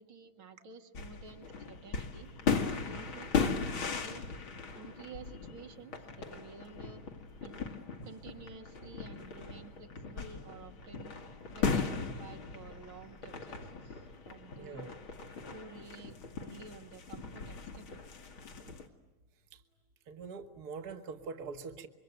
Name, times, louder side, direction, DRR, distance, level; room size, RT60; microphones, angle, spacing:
voice 1, 0.0-2.3 2.9-4.2 4.7-7.0 7.4-7.6 8.0-11.2 11.5-14.8 15.5-18.0, right 5 dB, 80° right, 4 dB, 2.7 m, -51 dB
sound 1, 0.9-18.9, left 5 dB, 80° left, 2.8 m, -38 dB
voice 2, 14.6-14.9 19.5-19.6 20.1-21.9, right 4 dB, 55° right, 7 dB, 1.8 m, -43 dB
26.5 x 23.5 x 9.4 m, 1.1 s
omnidirectional pair, 2.2 m